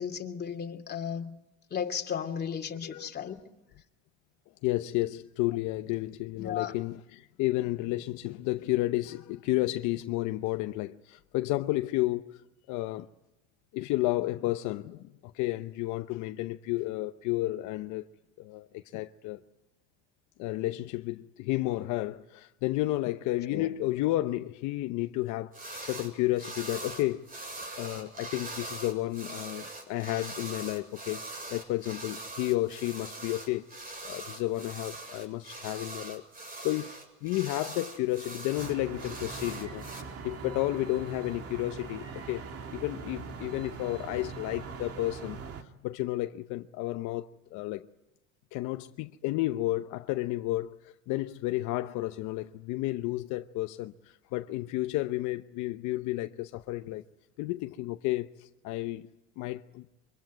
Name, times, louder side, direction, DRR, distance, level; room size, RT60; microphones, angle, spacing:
voice 1, 0.0-1.3 1.7-3.4 6.4-6.7 23.5-23.7, left 7 dB, 30° left, 2.8 m, -34 dB
voice 2, 4.6-12.4 12.7-13.1 13.7-18.1 18.4-19.4 20.4-27.4 27.8-33.7 34.0-36.2 36.6-47.9 48.5-57.0 57.4-59.1 59.4-59.8, left 17 dB, 70° left, 0.9 m, -32 dB
sound 1, 25.5-26.1 26.4-40.0, right 2 dB, 30° right, 7.3 m, -42 dB
sound 2, 38.6-45.6, right 5 dB, 50° right, 2.6 m, -42 dB
25.0 x 24.5 x 9.5 m
supercardioid pair, 105°, 31 cm